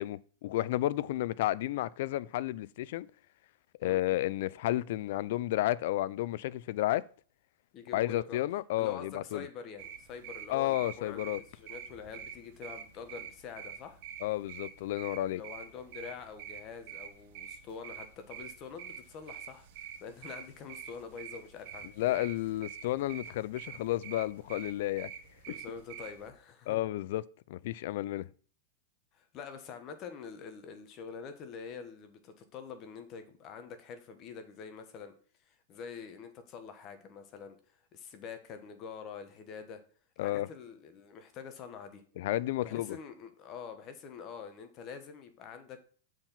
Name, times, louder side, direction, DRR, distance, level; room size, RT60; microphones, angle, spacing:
voice 1, 0.0-3.1 3.8-7.0 7.9-9.5 10.5-11.4 14.2-15.4 22.0-25.1 26.7-27.2 27.5-28.3 40.2-40.5 42.2-43.0, left 15 dB, 60° left, 0.4 m, -32 dB
voice 2, 7.7-8.4 8.8-14.0 15.3-19.7 20.0-22.3 25.5-26.8 29.1-35.1 35.5-37.6 37.9-39.8 40.2-42.0 42.6-45.8, left 6 dB, 35° left, 1.2 m, -46 dB
sound 1, 9.8-26.3, right 8 dB, 50° right, 1.5 m, -47 dB
7.6 x 4.6 x 5.7 m
hypercardioid pair, 135°, 0 cm